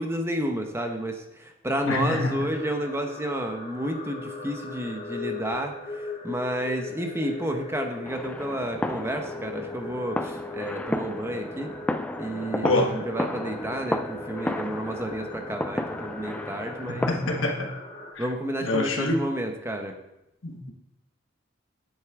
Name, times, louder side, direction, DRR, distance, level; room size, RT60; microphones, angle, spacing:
voice 1, 0.0-11.7 12.2-17.1 18.2-19.9, right 1 dB, 15° right, 4 dB, 0.9 m, -31 dB
voice 2, 1.8-2.5 12.6-12.9 16.9-17.7 18.1-18.2 18.6-19.2 20.4-20.7, left 2 dB, 85° left, 2 dB, 1.5 m, -26 dB
sound 1, 2.3-18.1, left 3 dB, 40° left, 1.8 m, -39 dB
sound 2, 8.1-17.5, left 1 dB, 5° left, 0.3 m, -33 dB
9.4 x 7.8 x 3.7 m, 0.87 s
head